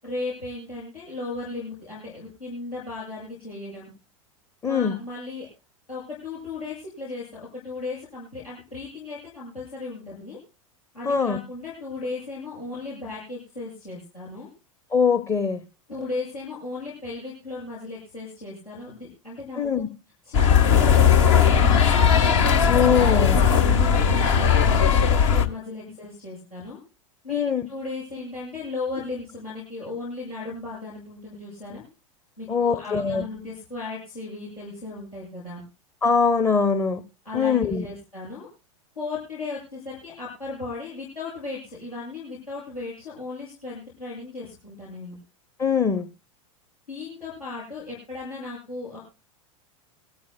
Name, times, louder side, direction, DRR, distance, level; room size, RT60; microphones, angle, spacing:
voice 1, 0.0-3.9 4.6-5.5 5.9-10.4 10.9-14.5 15.9-19.8 20.2-22.3 23.6-26.8 27.2-27.4 27.7-31.8 32.4-35.6 37.2-38.5 39.0-45.2 46.9-49.0, left 3 dB, 85° left, -8 dB, 7.3 m, -36 dB
voice 2, 4.6-4.9 11.0-11.4 14.9-15.6 19.6-19.9 22.7-23.4 27.3-27.7 32.5-33.3 36.0-37.0 37.3-37.9 45.6-46.1, left 6 dB, 15° left, 10 dB, 0.8 m, -22 dB
sound 1, 20.3-25.4, left 7 dB, 60° left, 1.4 m, -18 dB
23.5 x 14.0 x 2.2 m, 0.30 s
figure-of-eight pair, 90°, 18 cm